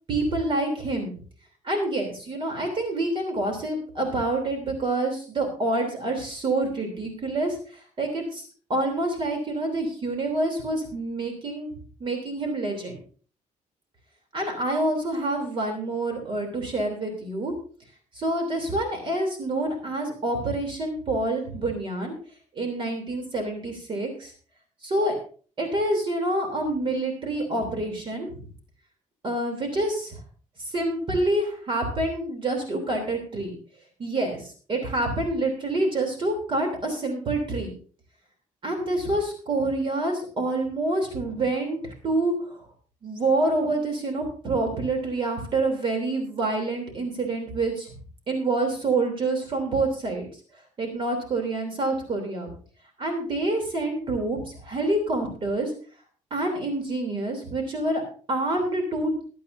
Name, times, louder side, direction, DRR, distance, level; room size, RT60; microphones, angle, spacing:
voice 1, 0.1-1.1 1.6-11.7 12.0-13.0 14.3-17.5 18.1-22.1 22.5-24.3 24.8-25.2 25.6-28.5 29.2-30.2 30.6-33.5 34.0-37.7 38.6-42.6 43.0-47.9 48.3-50.3 50.8-52.5 53.0-55.7 56.3-58.0 58.3-59.1, right 2 dB, 35° right, 3 dB, 3.1 m, -27 dB
22.0 x 8.6 x 2.7 m, 0.40 s
cardioid pair, 155°, 14 cm